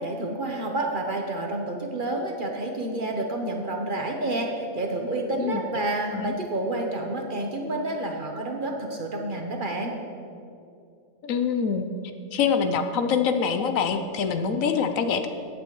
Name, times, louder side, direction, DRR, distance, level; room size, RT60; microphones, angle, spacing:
voice 1, 0.0-4.5 4.7-9.9, right 2 dB, 40° right, 2 dB, 1.0 m, -29 dB
voice 2, 11.2-11.9 12.3-15.3, left 6 dB, 75° left, 8 dB, 1.0 m, -25 dB
15.0 x 8.7 x 3.1 m, 2.5 s
omnidirectional pair, 1.5 m